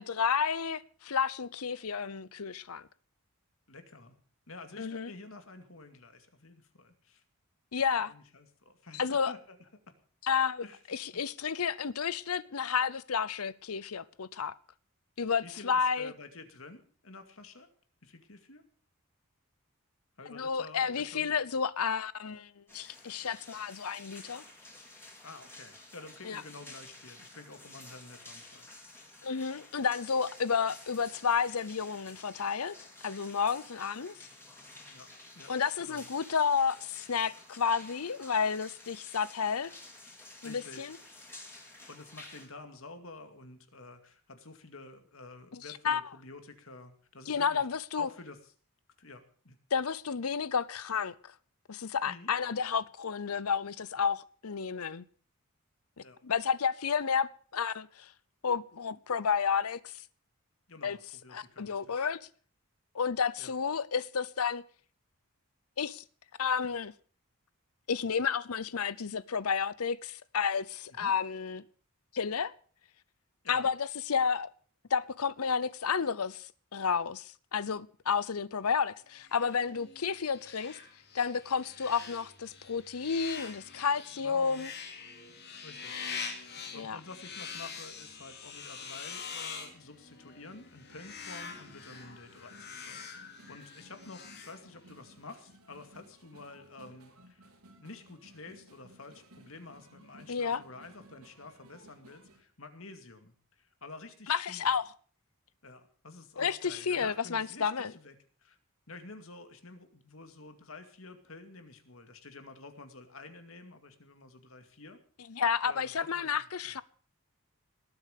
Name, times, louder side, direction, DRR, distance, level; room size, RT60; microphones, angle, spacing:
voice 1, 0.0-2.9 4.8-5.1 7.7-8.1 8.9-9.3 10.2-14.5 15.2-16.1 20.3-24.4 26.2-26.4 29.2-32.8 33.0-34.1 35.5-39.7 40.4-41.0 45.5-46.0 47.3-48.1 49.7-51.3 51.7-55.1 56.2-58.1 58.4-60.0 60.8-61.0 61.3-62.2 62.9-64.6 65.8-66.0 66.4-66.9 67.9-71.6 72.1-72.5 73.5-74.5 74.9-80.8 81.1-84.7 86.7-87.0 100.3-100.6 104.3-104.9 106.4-107.9 115.3-116.8, left 6 dB, 80° left, 0.7 m, -31 dB
voice 2, 3.7-4.2 4.5-7.2 8.1-9.7 10.6-10.8 11.1-11.2 15.4-17.7 18.0-18.6 20.2-21.3 25.2-29.0 34.9-35.1 35.3-35.5 35.8-36.1 40.4-40.9 41.9-47.7 48.0-48.5 49.0-49.6 52.1-52.3 56.0-56.2 60.7-62.1 63.4-63.5 71.0-71.1 73.4-73.7 84.2-84.7 85.6-86.0 86.4-104.8 105.6-108.1 108.4-108.6 108.9-115.0 115.7-116.4, left 3 dB, 65° left, 2.3 m, -50 dB
sound 1, 22.7-42.5, left 2 dB, 10° left, 4.0 m, -52 dB
sound 2, 79.2-95.1, left 6 dB, 45° left, 2.9 m, -45 dB
sound 3, 90.9-102.4, right 1 dB, 85° right, 3.6 m, -59 dB
19.0 x 8.8 x 6.6 m
head